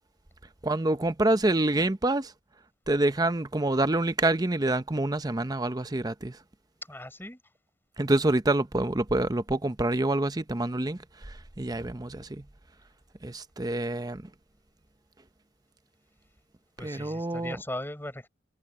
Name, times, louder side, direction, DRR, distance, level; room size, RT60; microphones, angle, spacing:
voice 1, 0.6-2.3 2.9-6.4 8.0-12.5 13.2-14.3 16.8-17.6, right 2 dB, 20° right, 0.7 m, -27 dB
voice 2, 6.9-7.5 16.8-18.3, left 1 dB, 10° left, 5.5 m, -38 dB
head